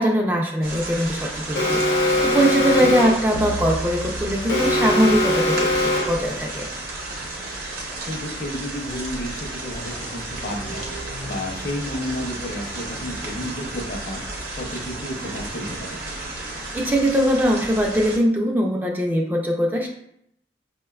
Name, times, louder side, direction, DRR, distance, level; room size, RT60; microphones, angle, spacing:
voice 1, 0.0-6.7 16.4-19.9, equal, 10° right, 0 dB, 0.3 m, -21 dB
sound 1, 0.6-18.2, right 2 dB, 55° right, 0.8 m, -33 dB
Alarm, 1.6-3.3 4.5-6.3, left 1 dB, 85° left, 0.8 m, -21 dB
sound 2, 3.3-6.0, left 2 dB, 85° right, 0.4 m, -34 dB
voice 2, 8.1-10.9 11.2-14.2 14.5-16.0, left 1 dB, 50° left, 1 dB, 0.6 m, -31 dB
5.2 x 2.2 x 2.3 m, 0.73 s
head